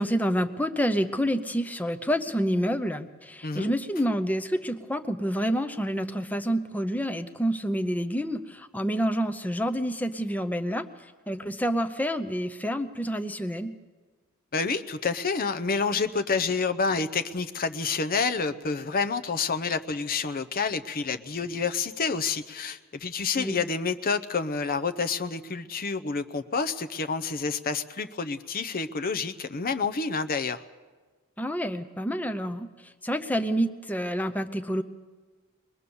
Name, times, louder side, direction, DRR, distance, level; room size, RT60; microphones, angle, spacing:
voice 1, 0.0-13.7 23.4-23.6 31.4-34.8, equal, 5° left, 7 dB, 0.7 m, -28 dB
voice 2, 14.5-30.6, left 4 dB, 40° left, 10 dB, 0.7 m, -28 dB
22.0 x 21.5 x 7.0 m, 1.4 s
head